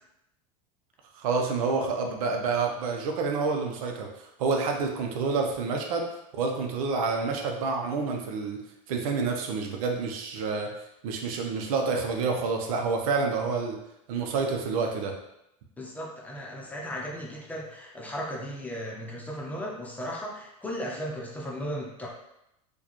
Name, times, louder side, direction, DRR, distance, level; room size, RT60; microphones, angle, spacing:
voice 1, 1.1-6.1 6.3-8.6 8.9-10.7 11.0-13.8 14.1-15.1, right 4 dB, 75° right, 2 dB, 0.7 m, -28 dB
voice 2, 15.8-22.1, equal, 10° left, -3 dB, 0.7 m, -36 dB
4.5 x 2.3 x 3.0 m, 0.84 s
supercardioid pair, 125°, 18 cm